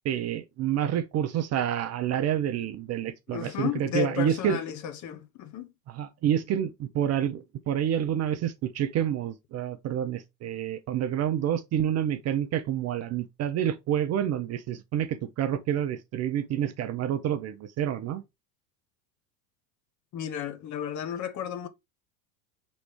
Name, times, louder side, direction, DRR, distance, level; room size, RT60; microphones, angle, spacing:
voice 1, 0.1-4.6 5.9-18.2, right 10 dB, 35° right, 0.5 m, -28 dB
voice 2, 3.3-5.7 20.1-21.7, left 9 dB, 35° left, 0.8 m, -33 dB
5.0 x 3.1 x 3.2 m
hypercardioid pair, 90°, 49 cm